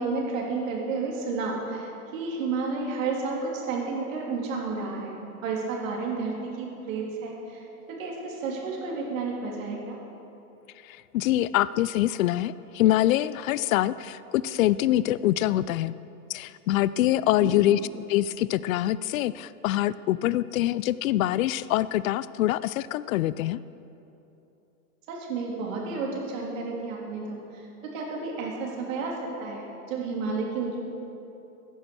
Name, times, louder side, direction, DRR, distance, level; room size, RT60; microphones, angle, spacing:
voice 1, 0.0-5.1 5.4-7.6 7.9-10.0 17.4-17.8 25.1-27.6 27.9-29.1 29.4-30.7, right 4 dB, 60° right, -2 dB, 3.4 m, -31 dB
voice 2, 10.9-16.0 16.3-17.8 18.1-23.6, left 14 dB, 65° left, 17 dB, 0.5 m, -25 dB
15.5 x 10.0 x 6.2 m, 2.9 s
supercardioid pair, 150°, 45 cm